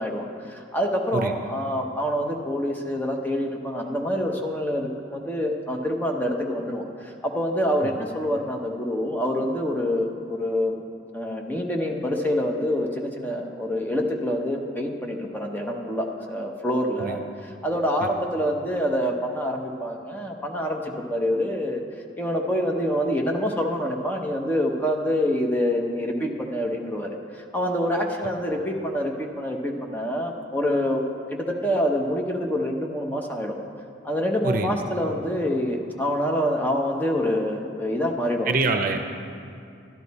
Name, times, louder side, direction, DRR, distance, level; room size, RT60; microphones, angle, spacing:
voice 1, 0.0-10.8 11.1-21.8 22.2-31.0 31.3-33.6 34.0-38.5, equal, 10° left, 1 dB, 0.8 m, -26 dB
voice 2, 38.5-39.0, right 3 dB, 50° right, 5 dB, 0.7 m, -24 dB
12.0 x 11.5 x 4.2 m, 2.4 s
head